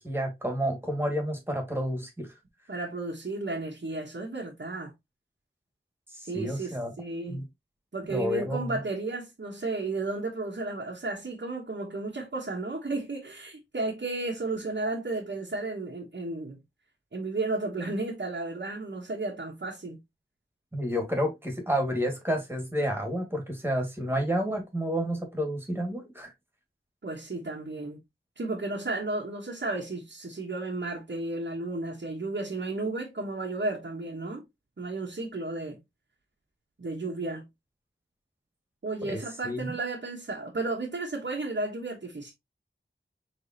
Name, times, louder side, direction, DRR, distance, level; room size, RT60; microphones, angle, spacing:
voice 1, 0.0-2.3 6.1-6.9 7.3-7.4 8.1-8.8 20.7-26.3 39.1-39.7, equal, 10° right, 2.1 m, -30 dB
voice 2, 2.7-4.9 6.2-7.5 7.9-16.6 17.1-20.0 27.0-28.0 28.4-34.4 34.8-35.8 36.8-37.5 38.8-42.3, right 2 dB, 65° right, 1.3 m, -33 dB
5.1 x 3.5 x 2.9 m
wide cardioid pair, 55°, 20 cm